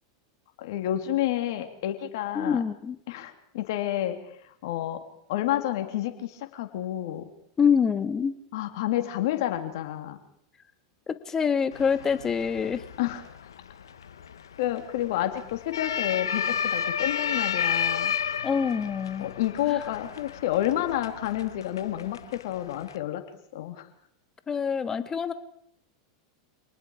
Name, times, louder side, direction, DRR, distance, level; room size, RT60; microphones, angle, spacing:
voice 1, 0.6-2.6 3.1-4.2 4.6-5.0 5.3-7.3 8.5-10.2 13.0-13.2 14.6-18.2 19.2-23.2 23.5-23.9, left 13 dB, 65° left, 6 dB, 3.4 m, -29 dB
voice 2, 2.3-3.0 7.6-8.3 11.1-12.8 18.4-19.3 24.5-25.3, left 6 dB, 25° left, 11 dB, 1.9 m, -25 dB
sound 1, 11.7-23.0, left 8 dB, 85° left, 1.4 m, -32 dB
27.5 x 19.5 x 5.0 m, 0.70 s
hypercardioid pair, 100°, 2 cm